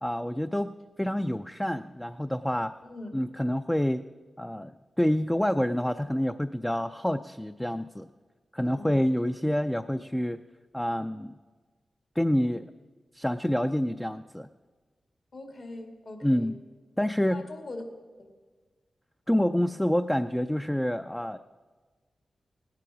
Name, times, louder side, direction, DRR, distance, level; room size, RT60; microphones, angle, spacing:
voice 1, 0.0-0.7 1.0-2.8 3.1-4.0 4.4-8.1 8.5-10.4 10.7-11.3 12.2-12.7 13.1-14.5 16.2-16.6 17.0-17.5 19.3-21.4, equal, 10° left, 8 dB, 0.4 m, -27 dB
voice 2, 2.8-3.2 8.6-9.1 15.3-16.5 17.3-17.9 18.2-18.3, left 2 dB, 60° left, 4 dB, 2.2 m, -42 dB
17.5 x 10.5 x 4.9 m, 1.4 s
wide cardioid pair, 90°, 0 cm